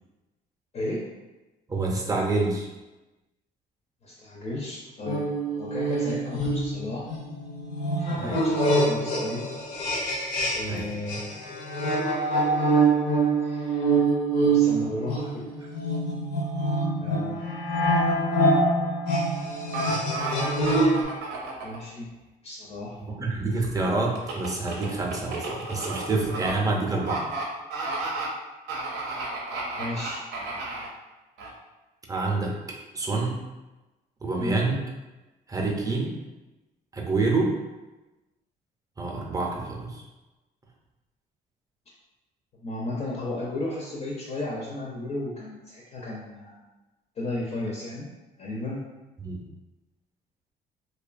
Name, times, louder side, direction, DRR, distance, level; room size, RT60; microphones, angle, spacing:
voice 1, 0.7-1.1 4.0-5.3 5.5-7.1 8.1-9.4 10.5-11.4 13.4-14.1 14.4-15.5 17.0-17.4 21.6-22.1 22.4-23.0 29.7-30.3 34.4-34.6 42.6-46.6 47.2-48.1 48.4-48.8, left 2 dB, 40° left, -3 dB, 0.4 m, -34 dB
voice 2, 1.7-2.7 8.2-8.4 10.7-10.9 23.1-27.3 32.1-32.6 32.9-33.4 34.2-34.8 35.5-36.1 36.9-37.6 39.0-40.0 49.2-49.5, right 3 dB, 20° right, -1 dB, 0.5 m, -27 dB
sound 1, 5.1-10.8 11.1-21.1, right 2 dB, 85° left, 0.6 m, -25 dB
sound 2, 19.7-21.8 24.2-26.5 27.0-27.4 27.7-28.3 28.7-30.9 31.4-31.5, right 3 dB, 90° right, 0.6 m, -32 dB
2.5 x 2.2 x 2.4 m, 1.1 s
cardioid pair, 110°, 17 cm